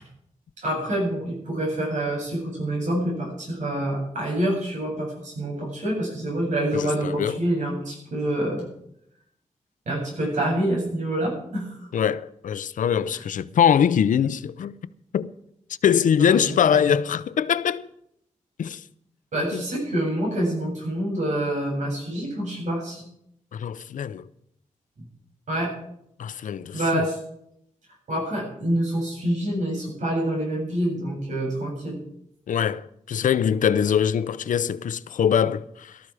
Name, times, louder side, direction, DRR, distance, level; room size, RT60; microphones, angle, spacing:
voice 1, 0.6-8.7 9.9-11.9 13.1-13.2 16.2-16.4 16.7-16.8 19.3-23.0 25.5-25.7 26.7-27.2 28.1-32.0, right 1 dB, 70° right, 7.8 m, -27 dB
voice 2, 6.7-7.4 11.9-14.7 15.1-15.3 15.8-17.9 18.6-18.8 19.5-19.6 23.5-24.3 26.2-27.1 32.5-36.0, left 8 dB, 90° left, 0.6 m, -23 dB
18.0 x 13.0 x 4.9 m
wide cardioid pair, 160°, 13 cm